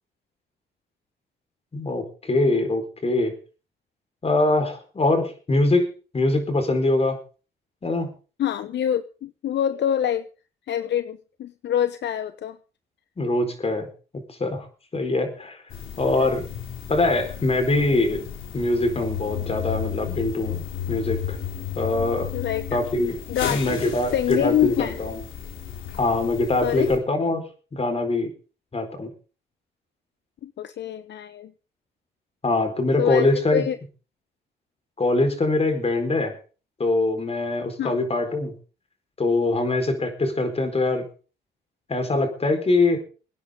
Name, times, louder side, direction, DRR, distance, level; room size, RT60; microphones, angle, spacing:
voice 1, 1.7-3.3 4.2-7.2 7.8-8.1 13.2-13.9 14.3-14.7 14.9-15.6 16.0-16.5 16.9-18.3 18.5-20.6 20.9-21.4 21.8-22.3 22.7-23.2 23.5-25.2 26.0-27.4 27.7-28.3 28.7-29.1 32.4-33.7 35.0-36.3 36.8-38.5 39.2-41.0 41.9-43.0, left 2 dB, 30° left, 7 dB, 4.5 m, -23 dB
voice 2, 8.4-10.3 10.7-12.6 22.3-22.8 23.3-25.0 26.6-26.9 30.4-31.5 33.0-33.3 33.5-33.8 37.8-38.0, left 10 dB, 60° left, 12 dB, 0.9 m, -25 dB
sound 1, 15.7-27.0, left 9 dB, 80° left, 3.3 m, -33 dB
24.0 x 9.8 x 3.8 m, 0.36 s
cardioid pair, 90°, 20 cm